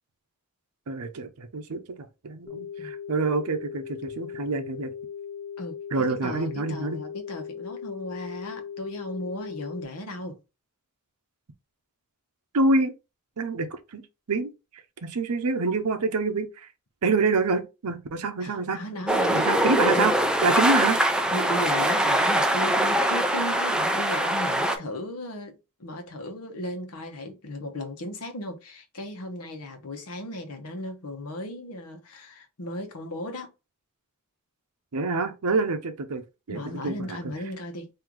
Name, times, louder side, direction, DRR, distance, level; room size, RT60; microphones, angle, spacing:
voice 1, 0.9-1.8 2.2-4.9 5.9-7.0 12.5-12.9 13.4-14.5 15.0-16.7 17.0-18.8 19.3-21.0 34.9-37.2, right 3 dB, 85° right, 0.6 m, -26 dB
sound 1, 2.5-9.9, left 8 dB, 20° left, 1.4 m, -38 dB
voice 2, 5.6-10.4 18.4-20.1 21.3-33.5 36.5-37.9, left 1 dB, 80° left, 1.0 m, -36 dB
sound 2, 19.1-24.8, right 1 dB, 5° right, 0.4 m, -23 dB
3.8 x 2.7 x 2.9 m
head